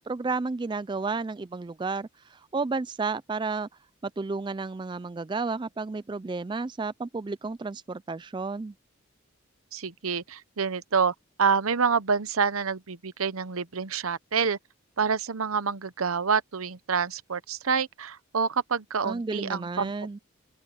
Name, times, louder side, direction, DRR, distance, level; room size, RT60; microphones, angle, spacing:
voice 1, 0.0-3.7 4.0-8.7 19.0-20.2, right 4 dB, 20° right, 0.3 m, -32 dB
voice 2, 9.7-14.6 15.0-19.9, right 6 dB, 80° right, 0.9 m, -27 dB
open air
head